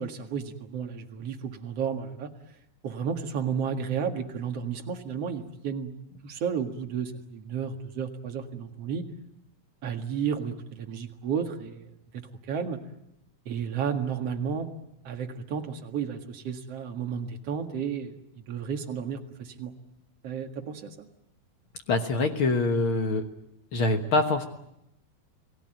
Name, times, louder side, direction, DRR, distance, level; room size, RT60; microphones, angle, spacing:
voice 1, 0.0-2.3 2.8-5.9 6.2-9.0 9.8-12.8 13.5-14.7 15.0-18.1 18.5-19.7 20.2-21.1, right 7 dB, 45° right, 4 dB, 2.5 m, -32 dB
voice 2, 21.9-23.3 23.7-24.4, left 2 dB, 65° left, 6 dB, 1.3 m, -24 dB
30.0 x 18.5 x 9.1 m, 0.84 s
omnidirectional pair, 4.4 m